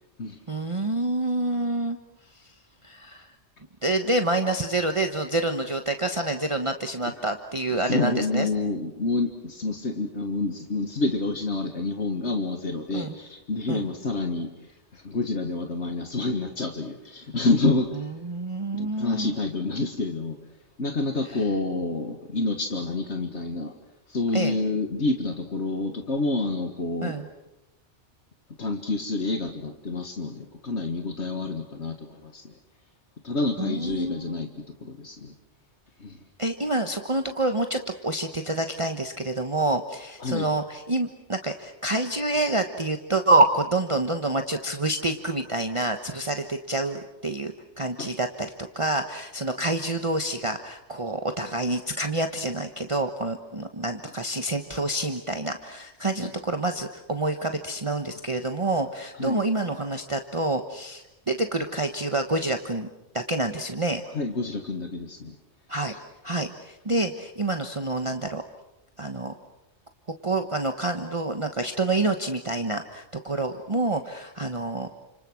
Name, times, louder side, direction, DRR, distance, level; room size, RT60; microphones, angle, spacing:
voice 1, 0.5-2.0 2.4-2.5 2.8-3.3 3.8-8.5 12.9-13.1 13.7-13.9 18.2-19.4 24.3-24.5 27.0-27.2 33.6-34.4 36.4-62.9 63.1-64.0 65.7-65.9 66.2-68.4 69.0-69.3 70.2-75.0, right 2 dB, 30° right, 6 dB, 1.3 m, -27 dB
voice 2, 7.7-14.5 14.9-18.1 18.7-20.4 20.8-23.7 24.1-27.2 28.6-32.5 33.2-34.5 34.8-35.3 36.0-36.2 40.2-40.5 48.0-48.1 56.2-56.3 59.2-59.4 64.1-65.4 65.9-66.0, left 3 dB, 75° left, 5 dB, 2.1 m, -28 dB
30.0 x 27.5 x 6.3 m, 0.95 s
omnidirectional pair, 1.2 m